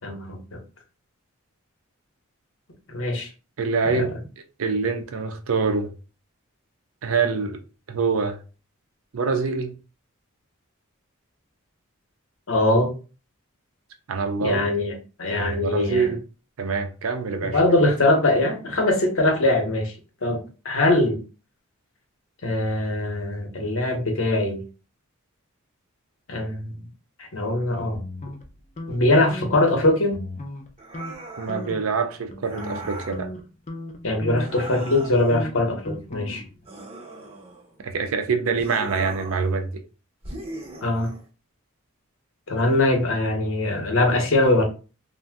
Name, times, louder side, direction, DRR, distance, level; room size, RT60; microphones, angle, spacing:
voice 1, 0.0-0.6 2.9-3.3 3.9-4.1 12.5-12.9 14.4-14.9 15.2-16.1 17.5-19.9 20.2-21.2 22.4-24.6 26.3-26.7 27.2-28.0 28.9-30.2 34.0-36.4 40.8-41.1 42.5-44.6, left 2 dB, 65° left, 0.8 m, -22 dB
voice 2, 3.6-4.1 4.6-5.9 7.0-7.6 7.9-8.4 9.1-9.7 14.1-14.7 15.3-16.2 16.6-17.6 31.4-33.3 37.8-39.8, right 4 dB, 70° right, 0.5 m, -25 dB
sound 1, 27.9-29.0 29.3-29.7 30.1-30.7 30.9-31.2 31.5-31.9 32.3-36.7, left 1 dB, 30° left, 0.4 m, -36 dB
sound 2, 30.8-31.7 32.4-33.2 34.4-35.4 36.7-37.8 38.6-39.5 40.2-41.2, right 2 dB, 25° right, 0.7 m, -39 dB
2.6 x 2.1 x 3.4 m
head